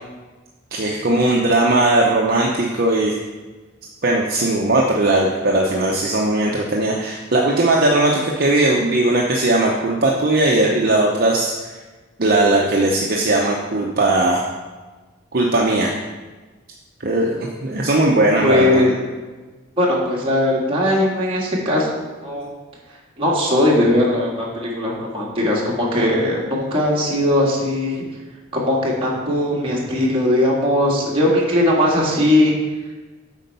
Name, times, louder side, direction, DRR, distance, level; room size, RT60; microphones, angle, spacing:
voice 1, 0.7-3.1 4.0-11.5 12.2-14.4 15.3-15.9 17.0-18.8, right 2 dB, 45° right, -2 dB, 0.7 m, -18 dB
voice 2, 18.4-19.0 19.8-22.5 23.2-28.0 28.5-32.5, left 1 dB, 25° right, -4 dB, 1.7 m, -19 dB
8.2 x 4.5 x 5.3 m, 1.3 s
head